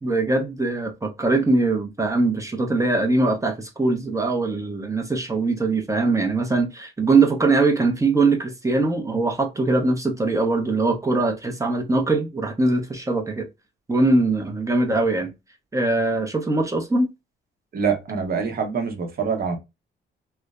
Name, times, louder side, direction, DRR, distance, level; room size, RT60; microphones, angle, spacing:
voice 1, 0.0-13.5 13.9-15.3 15.7-17.1, right 3 dB, 15° right, 0.7 m, -21 dB
voice 2, 17.7-19.6, right 6 dB, 50° right, 0.9 m, -25 dB
3.2 x 2.1 x 2.3 m
cardioid pair, 90°, 20 cm